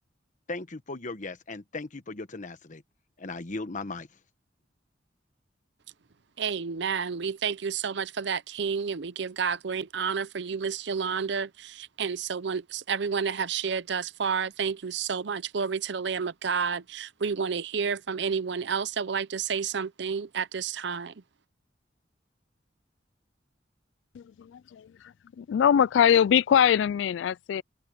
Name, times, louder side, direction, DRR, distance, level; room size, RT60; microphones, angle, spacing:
voice 1, 0.5-2.8 3.2-4.1, left 3 dB, 45° left, 1.2 m, -37 dB
voice 2, 6.4-21.1, right 6 dB, 65° right, 0.6 m, -30 dB
voice 3, 24.2-24.9 25.4-27.6, left 8 dB, 75° left, 0.3 m, -22 dB
open air
head